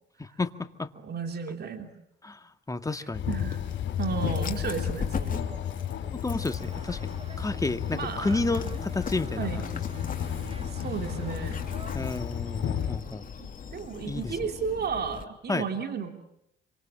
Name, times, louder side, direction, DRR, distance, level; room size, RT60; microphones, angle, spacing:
voice 1, 0.2-0.9 2.2-2.4 2.7-3.3 6.1-7.0 7.4-9.6 11.9-13.3 14.1-14.3 15.5-15.6, left 2 dB, 15° left, 8 dB, 2.0 m, -31 dB
voice 2, 0.9-1.9 3.3-3.6 4.0-5.6 7.9-8.4 9.4-9.7 10.6-11.6 13.4-16.1, right 6 dB, 55° right, 6 dB, 3.2 m, -33 dB
sound 1, 3.1-13.0, left 10 dB, 70° left, 4.6 m, -33 dB
Dog, 3.2-15.2, left 6 dB, 45° left, 2.9 m, -40 dB
sound 2, 6.4-12.2, right 3 dB, 30° right, 2.9 m, -44 dB
26.5 x 25.0 x 8.8 m, 0.77 s
cardioid pair, 90°, 20 cm